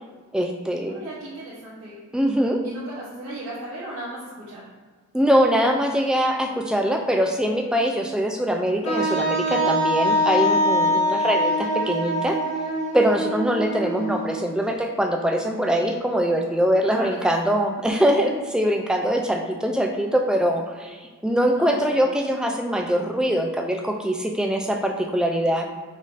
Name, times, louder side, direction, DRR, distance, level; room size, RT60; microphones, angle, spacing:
voice 1, 0.3-1.0 2.1-2.6 5.1-12.4 12.9-25.6, equal, 5° right, 2 dB, 0.3 m, -23 dB
voice 2, 0.8-2.0 2.6-4.6 10.0-10.4 16.8-17.3 21.5-22.0, right 1 dB, 70° right, -8 dB, 1.0 m, -36 dB
Wind instrument woodwind instrument, 8.8-14.6, equal, 85° left, 1.4 m, -23 dB
5.2 x 2.6 x 3.8 m, 1.5 s
head